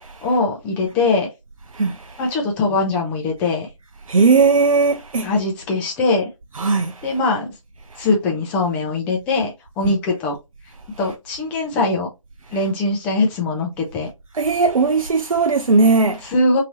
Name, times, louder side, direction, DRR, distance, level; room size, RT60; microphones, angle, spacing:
voice 1, 0.2-1.3 2.2-3.7 5.2-6.3 7.0-7.5 8.0-10.4 11.0-12.1 12.5-14.1 16.3-16.6, left 3 dB, 10° left, 0.4 m, -21 dB
voice 2, 1.7-2.2 4.1-5.3 6.6-7.2 7.9-8.1 9.8-9.9 14.3-16.3, right 4 dB, 85° right, 0.5 m, -18 dB
3.2 x 2.8 x 2.8 m
figure-of-eight pair, 150°, 17 cm